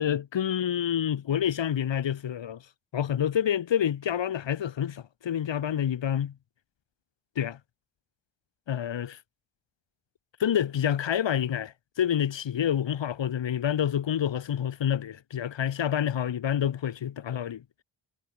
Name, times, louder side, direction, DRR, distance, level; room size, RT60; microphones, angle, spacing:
voice 1, 0.0-2.6 2.9-6.3 7.4-7.6 8.7-9.2 10.4-17.6, left 9 dB, 70° left, 4.3 m, -28 dB
supercardioid pair, 50°, 46 cm